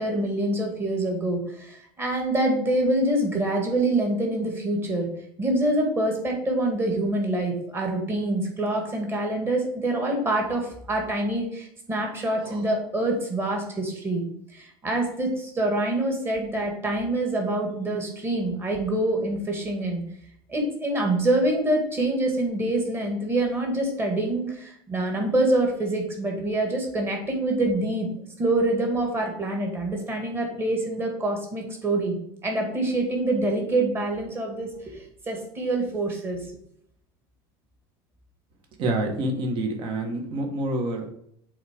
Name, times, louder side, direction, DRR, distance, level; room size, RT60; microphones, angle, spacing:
voice 1, 0.0-5.1 5.4-14.2 14.5-20.0 20.5-28.1 28.4-32.2 32.4-36.4, right 1 dB, 20° right, 1 dB, 1.9 m, -26 dB
voice 2, 38.8-41.1, right 1 dB, 45° right, 4 dB, 1.5 m, -27 dB
7.9 x 3.8 x 5.1 m, 0.69 s
cardioid pair, 145°, 12 cm